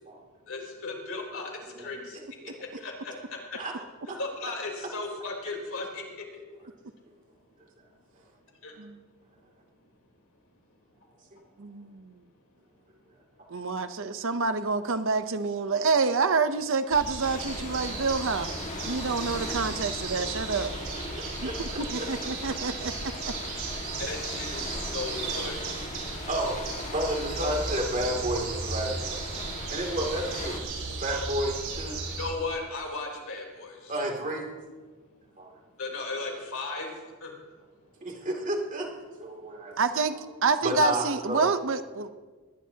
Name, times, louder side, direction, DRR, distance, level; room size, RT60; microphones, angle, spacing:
voice 1, 0.5-1.5 1.8-2.2 2.8-3.6 4.2-6.0 8.6-8.7 24.0-25.7 32.2-33.9 35.8-36.9 37.2-37.3, left 3 dB, 65° left, 0 dB, 3.8 m, -36 dB
voice 2, 1.7-2.0 2.4-2.8 3.5-3.7 4.1-4.2 11.3-11.4 19.7-19.8 21.1-21.5 22.0-22.1 26.3-26.6 26.9-29.2 29.7-30.6 31.0-32.0 33.9-34.5 35.4-35.5 38.0-38.9 39.2-39.7 40.1-40.2 40.6-41.5, right 1 dB, 35° right, 1 dB, 2.8 m, -31 dB
voice 3, 11.6-12.1 13.5-18.5 18.9-20.7 21.6-22.9 39.8-40.1 40.4-42.1, right 4 dB, 60° right, 10 dB, 0.8 m, -27 dB
sound 1, 16.9-32.3, right 3 dB, 80° right, 5.6 m, -35 dB
sound 2, 17.2-30.6, left 2 dB, 35° left, 1.9 m, -40 dB
19.5 x 19.0 x 2.9 m, 1.4 s
head